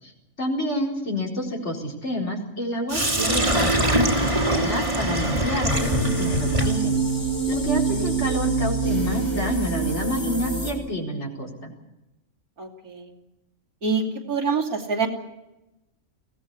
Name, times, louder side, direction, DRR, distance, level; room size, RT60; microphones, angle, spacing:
voice 1, 0.4-7.0 7.5-11.7, equal, 50° left, 1 dB, 4.8 m, -29 dB
Sink (filling or washing), 2.9-10.8, right 1 dB, 20° right, 2.6 m, -25 dB
sound 1, 5.7-10.7, right 5 dB, 85° left, 5.5 m, -26 dB
voice 2, 12.6-13.1 13.8-15.1, right 4 dB, 85° right, 2 dB, 3.3 m, -26 dB
23.0 x 18.0 x 8.1 m, 0.94 s
omnidirectional pair, 1.5 m